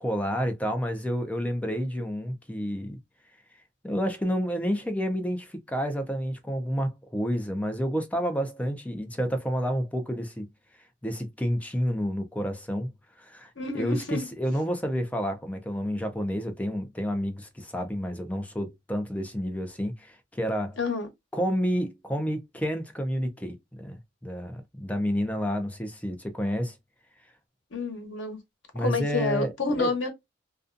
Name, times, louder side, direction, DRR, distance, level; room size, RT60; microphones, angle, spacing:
voice 1, 0.0-3.0 3.8-10.5 11.0-12.9 13.2-20.8 21.3-26.7 28.7-29.5 29.8-29.9, equal, 10° left, 0.4 m, -29 dB
voice 2, 13.6-14.2 20.8-21.1 27.7-28.4 28.7-30.1, left 3 dB, 85° left, 0.9 m, -29 dB
2.5 x 2.3 x 2.4 m
head